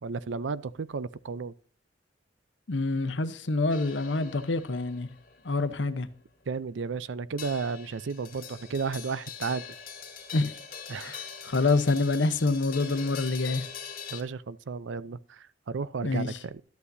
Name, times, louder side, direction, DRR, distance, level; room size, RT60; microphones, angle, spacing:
voice 1, 0.0-1.5 6.5-9.6 10.9-11.2 14.1-16.6, right 5 dB, 85° right, 0.5 m, -33 dB
voice 2, 2.7-5.1 5.4-6.1 10.3-10.5 11.0-11.2 11.4-13.6 16.0-16.3, left 3 dB, 75° left, 0.8 m, -26 dB
sound 1, 3.7-14.2, left 7 dB, 50° left, 1.9 m, -43 dB
11.5 x 8.4 x 2.6 m
head